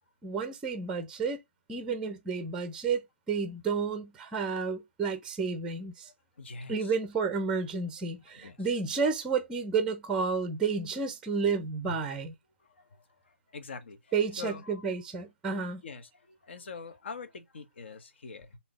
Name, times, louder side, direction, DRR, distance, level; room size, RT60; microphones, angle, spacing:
voice 1, 0.2-1.4 1.7-6.1 6.7-12.3 14.1-15.8, right 5 dB, 10° right, 0.6 m, -31 dB
voice 2, 6.0-6.9 8.4-8.7 11.9-12.0 12.6-14.8 15.8-18.6, left 4 dB, 60° left, 1.1 m, -44 dB
3.7 x 2.8 x 4.7 m
figure-of-eight pair, 145°, 7 cm